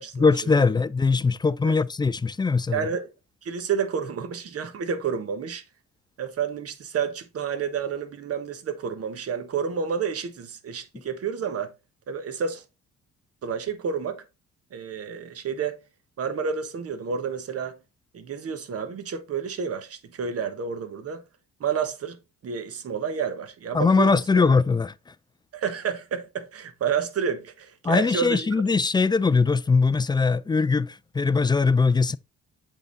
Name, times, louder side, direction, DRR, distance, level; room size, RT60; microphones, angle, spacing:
voice 1, 0.2-2.9 10.9-11.0 23.7-25.1 27.8-32.2, left 4 dB, 15° left, 0.3 m, -21 dB
voice 2, 2.7-3.1 3.4-5.6 6.2-11.7 12.1-12.6 13.4-14.2 14.7-15.8 16.2-17.7 18.1-21.2 21.6-22.2 22.4-24.6 25.5-28.5, right 6 dB, 50° right, 1.2 m, -30 dB
8.0 x 3.8 x 3.9 m
cardioid pair, 90°, 30 cm